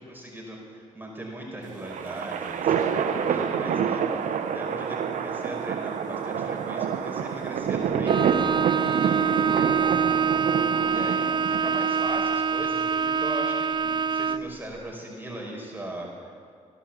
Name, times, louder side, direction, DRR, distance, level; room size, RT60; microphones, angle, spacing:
voice 1, 0.0-8.2 8.8-10.2 10.9-16.4, right 1 dB, 15° right, -2 dB, 5.2 m, -38 dB
sound 1, 1.6-12.1, right 7 dB, 80° right, 0.9 m, -27 dB
Bowed string instrument, 8.0-14.6, right 6 dB, 35° right, 0.4 m, -25 dB
16.5 x 12.0 x 7.3 m, 2.1 s
cardioid pair, 65°, 13 cm